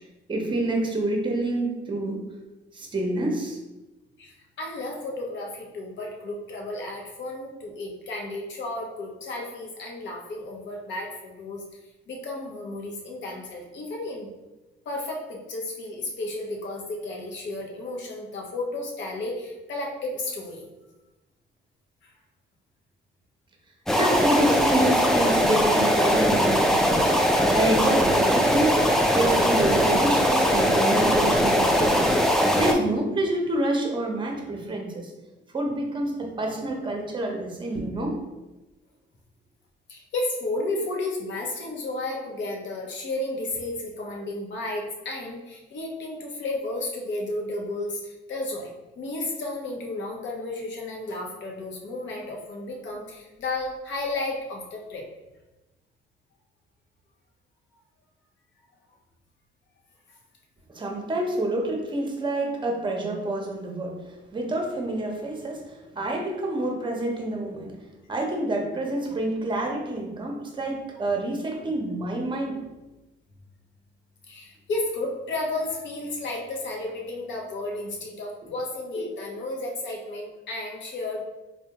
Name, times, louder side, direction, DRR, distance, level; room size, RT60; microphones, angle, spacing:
voice 1, 0.3-2.2 2.7-3.6 24.0-27.1 27.5-28.7 29.1-35.1 35.5-38.1 60.7-67.7 68.1-72.7 78.4-78.5, right 1 dB, 25° right, 1 dB, 0.7 m, -28 dB
voice 2, 4.2-11.6 12.1-14.3 14.9-20.6 22.0-22.1 39.9-48.7 49.0-55.1 74.3-81.2, left 2 dB, 65° left, 0 dB, 0.7 m, -33 dB
sound 1, 23.9-32.7, equal, ahead, 0.3 m, -21 dB
3.3 x 2.2 x 2.9 m, 1.1 s
cardioid pair, 90°, 20 cm